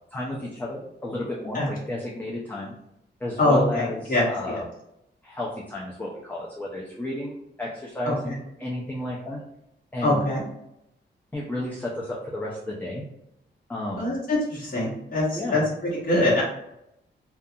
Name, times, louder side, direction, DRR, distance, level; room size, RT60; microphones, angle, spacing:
voice 1, 0.1-2.7 3.2-4.6 5.2-8.3 8.6-9.4 9.9-10.2 11.3-13.0 13.7-14.1 15.3-15.6, left 1 dB, 10° left, -5 dB, 0.4 m, -32 dB
voice 2, 3.4-4.6 8.0-8.4 10.0-10.4 13.9-16.4, left 1 dB, 45° left, -5 dB, 1.0 m, -24 dB
2.4 x 2.3 x 2.7 m, 0.82 s
wide cardioid pair, 150°, 19 cm